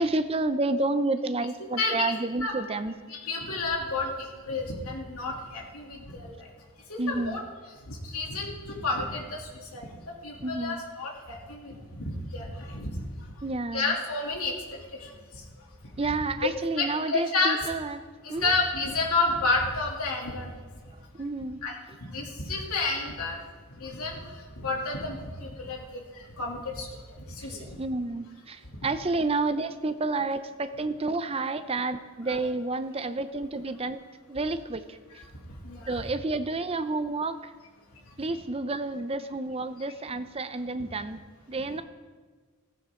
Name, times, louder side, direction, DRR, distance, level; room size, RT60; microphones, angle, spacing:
voice 1, 0.0-3.0 7.0-7.4 10.4-10.8 13.4-14.0 16.0-18.0 18.3-18.5 20.9-21.6 27.4-35.2 35.9-37.5 38.2-41.8, right 3 dB, 25° right, 10 dB, 0.6 m, -30 dB
voice 2, 1.8-2.1 2.4-2.5 3.1-4.1 4.4-6.4 6.9-7.4 7.9-9.4 9.7-13.0 13.7-14.5 15.0-15.1 16.8-17.6 18.2-20.5 21.6-21.8 22.0-23.4 23.8-24.2 24.6-25.2 25.6-25.8 26.4-26.9 27.4-27.8 32.3-32.4 35.6-35.9, left 3 dB, 85° left, -1 dB, 2.8 m, -30 dB
15.5 x 15.0 x 3.8 m, 1.5 s
head